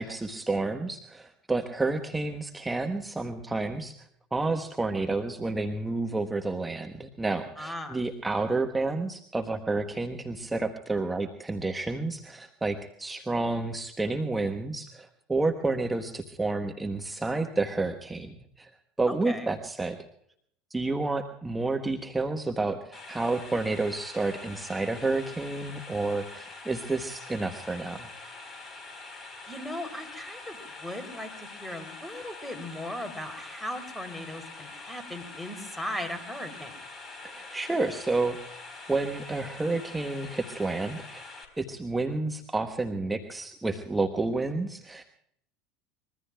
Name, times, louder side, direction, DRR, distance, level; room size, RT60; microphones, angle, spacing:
voice 1, 0.0-4.0 4.3-18.7 19.0-20.0 20.7-28.1 37.2-38.6 38.9-41.2 41.6-45.0, right 3 dB, 10° right, 5 dB, 1.2 m, -30 dB
voice 2, 7.6-8.0 19.1-19.5 29.5-36.7, left 1 dB, 5° left, 7 dB, 3.4 m, -38 dB
sound 1, 22.9-41.4, left 3 dB, 25° left, 4.2 m, -44 dB
25.0 x 22.0 x 2.3 m, 0.68 s
figure-of-eight pair, 70°, 0 cm